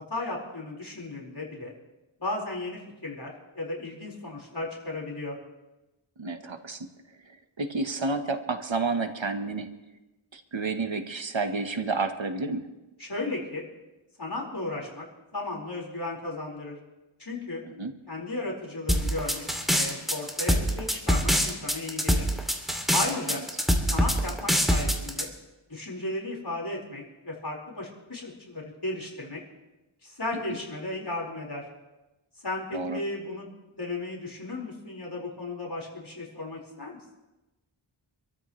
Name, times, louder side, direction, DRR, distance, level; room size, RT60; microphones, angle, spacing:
voice 1, 0.1-1.7 2.2-5.4 13.0-13.6 14.2-15.0 15.3-16.8 17.2-17.6 18.1-22.3 22.9-23.4 23.9-25.3 25.7-29.4 30.0-31.6 32.4-37.0, left 2 dB, 55° left, -3 dB, 4.6 m, -35 dB
voice 2, 6.2-6.9 7.6-9.7 10.3-12.7 17.8-17.9 32.7-33.0, right 3 dB, 70° right, 7 dB, 1.2 m, -30 dB
sound 1, 18.9-25.2, equal, ahead, 2.6 m, -24 dB
27.0 x 13.5 x 3.2 m, 1.0 s
wide cardioid pair, 45°, 47 cm